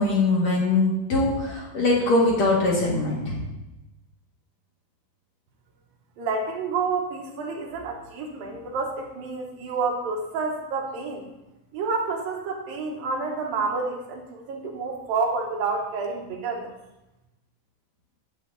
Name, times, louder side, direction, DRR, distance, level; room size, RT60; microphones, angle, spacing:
voice 1, 0.0-3.4, left 2 dB, 50° left, -5 dB, 3.5 m, -22 dB
voice 2, 6.2-11.3 11.7-16.7, right 4 dB, 75° right, 0 dB, 3.0 m, -29 dB
10.5 x 8.5 x 4.1 m, 0.97 s
omnidirectional pair, 4.3 m